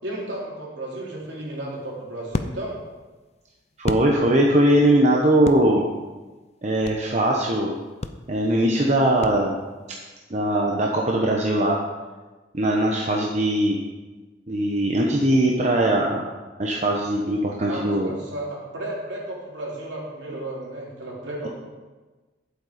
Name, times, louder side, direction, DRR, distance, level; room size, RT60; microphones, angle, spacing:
voice 1, 0.0-2.8 17.7-21.5, right 1 dB, 70° right, -4 dB, 3.4 m, -33 dB
sound 1, 1.2-4.7 5.0-7.2 7.5-7.6 8.0-9.8, left 2 dB, 35° left, 0.5 m, -33 dB
voice 2, 3.8-5.8 6.6-7.7 8.3-9.6 10.3-11.8 12.5-13.8 14.5-16.2 16.6-18.1, right 1 dB, 40° right, -1 dB, 1.0 m, -20 dB
11.0 x 8.0 x 5.1 m, 1.3 s
head